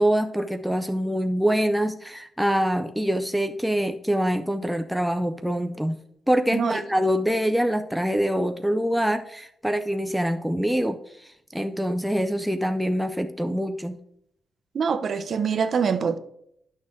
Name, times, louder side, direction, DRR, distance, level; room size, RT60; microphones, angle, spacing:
voice 1, 0.0-6.0 6.3-14.0, equal, ahead, 0.4 m, -25 dB
voice 2, 14.7-16.2, right 6 dB, 40° right, 0.6 m, -24 dB
11.0 x 6.5 x 3.6 m
wide cardioid pair, 170°, 0 cm